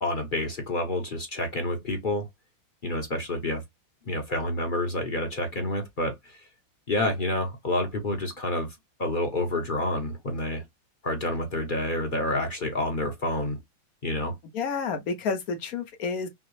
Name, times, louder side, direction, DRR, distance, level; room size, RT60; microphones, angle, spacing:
voice 1, 0.0-2.3 2.8-3.6 4.1-6.4 6.9-10.6 11.0-13.6 14.0-14.3, left 1 dB, 40° left, 0.7 m, -29 dB
voice 2, 14.5-16.3, left 5 dB, 65° left, 0.9 m, -30 dB
5.7 x 2.1 x 3.1 m
omnidirectional pair, 2.1 m